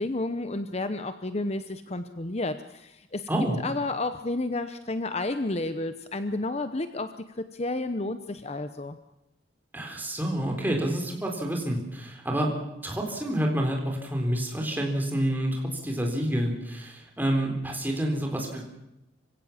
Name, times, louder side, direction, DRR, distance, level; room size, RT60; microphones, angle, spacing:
voice 1, 0.0-3.3 3.6-9.0, left 2 dB, 35° left, 10 dB, 0.8 m, -31 dB
voice 2, 9.7-12.5 12.8-18.6, right 1 dB, 10° right, 1 dB, 4.0 m, -28 dB
26.0 x 16.5 x 7.3 m, 0.90 s
head